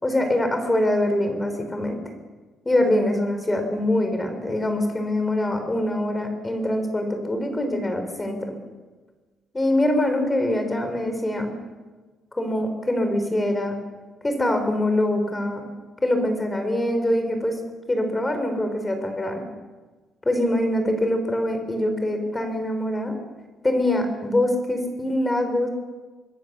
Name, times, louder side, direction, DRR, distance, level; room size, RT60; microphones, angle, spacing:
voice 1, 0.0-2.0 2.6-8.5 9.5-11.5 12.3-13.8 14.2-15.6 16.0-17.6 17.9-19.4 20.2-23.2 23.6-25.7, left 1 dB, 10° left, 6 dB, 4.2 m, -24 dB
26.0 x 21.5 x 6.9 m, 1.3 s
cardioid pair, 165°, 0 cm